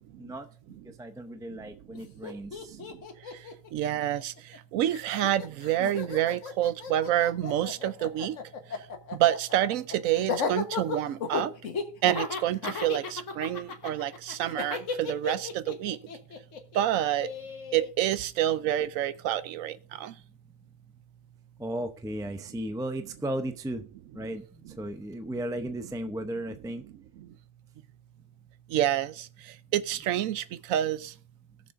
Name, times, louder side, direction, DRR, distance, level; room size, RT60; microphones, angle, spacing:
voice 1, 1.0-2.8 21.6-23.8 24.1-24.4 24.8-26.8, right 1 dB, 5° right, 0.3 m, -35 dB
Laughter, 1.9-2.0 2.2-4.6 4.9-17.9, left 5 dB, 70° left, 1.6 m, -35 dB
voice 2, 3.7-4.3 4.7-8.4 9.2-11.5 12.0-16.0 16.8-17.3 17.7-20.1 28.7-29.1 29.7-30.4 30.7-31.0, right 12 dB, 85° right, 1.0 m, -27 dB
19.5 x 6.6 x 2.6 m
omnidirectional pair, 1.4 m